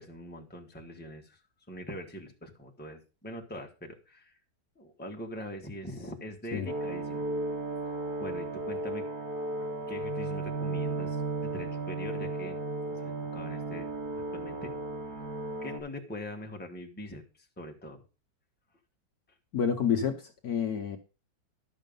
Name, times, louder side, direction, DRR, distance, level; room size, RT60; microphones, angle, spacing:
voice 1, 0.0-1.4 1.7-4.3 4.8-7.3 8.2-9.1 9.9-12.6 12.9-14.7 15.6-18.0, left 1 dB, 5° left, 1 dB, 1.2 m, -42 dB
sound 1, 6.7-15.8, right 2 dB, 55° right, 3.9 m, -34 dB
voice 2, 19.5-21.0, left 7 dB, 60° left, 6 dB, 1.3 m, -29 dB
12.0 x 6.4 x 5.3 m, 0.32 s
omnidirectional pair, 2.0 m